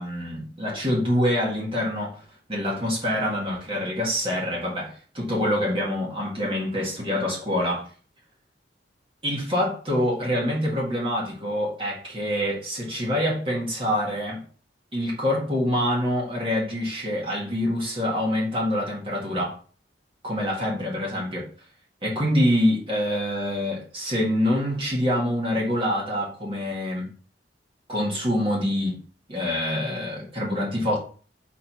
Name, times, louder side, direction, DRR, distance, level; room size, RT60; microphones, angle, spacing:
voice 1, 0.0-7.9 9.2-14.4 14.9-19.5 20.2-21.5 22.0-27.1 27.9-29.0 29.3-31.0, left 1 dB, 30° right, 1.8 m, -26 dB
4.6 x 4.1 x 5.4 m
head